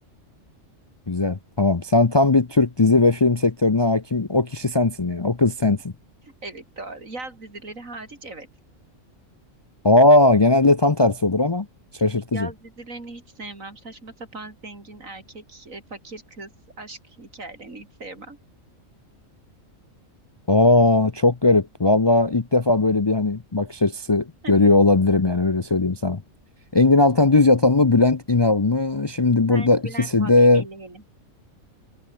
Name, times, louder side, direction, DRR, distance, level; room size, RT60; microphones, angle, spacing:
voice 1, 1.1-5.8 9.8-11.7 12.0-12.5 20.5-26.2 26.7-30.6, left 2 dB, 30° left, 0.6 m, -18 dB
voice 2, 6.2-8.5 12.3-16.5 16.8-18.4 24.4-24.5 29.5-31.0, right 2 dB, 85° right, 4.9 m, -39 dB
omnidirectional pair, 1.4 m